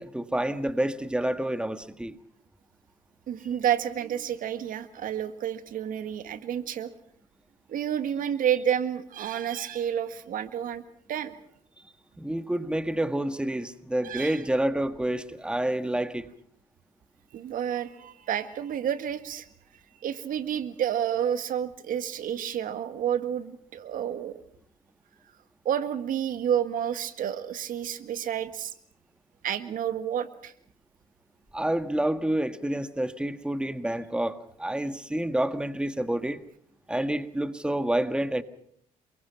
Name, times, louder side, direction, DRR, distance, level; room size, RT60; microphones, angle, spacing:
voice 1, 0.0-2.2 12.2-16.3 31.5-36.4 36.9-38.4, right 1 dB, 5° right, 1.7 m, -28 dB
voice 2, 3.3-6.9 7.7-10.8 11.1-11.4 14.0-14.4 17.3-19.5 20.0-24.3 25.7-28.7 29.4-30.5, right 9 dB, 70° right, 1.8 m, -30 dB
29.0 x 22.5 x 5.9 m
cardioid pair, 80°, 15 cm